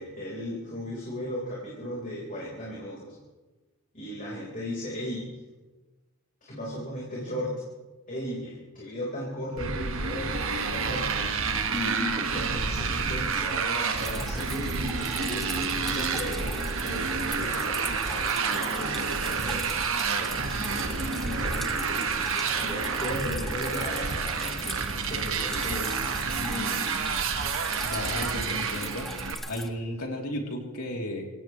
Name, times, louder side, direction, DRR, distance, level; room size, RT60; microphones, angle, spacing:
voice 1, 0.0-3.1 3.9-5.3 6.4-7.6 8.1-11.1 11.7-19.7 20.2-26.9, left 1 dB, 35° left, -5 dB, 4.2 m, -36 dB
Motorcycle, 9.6-29.3, right 5 dB, 60° right, 1.5 m, -29 dB
Drip, 14.0-29.7, equal, ahead, 0.9 m, -41 dB
voice 2, 27.8-29.1 29.5-31.3, left 1 dB, 80° left, 0 dB, 3.2 m, -34 dB
26.5 x 16.5 x 3.2 m, 1.2 s
head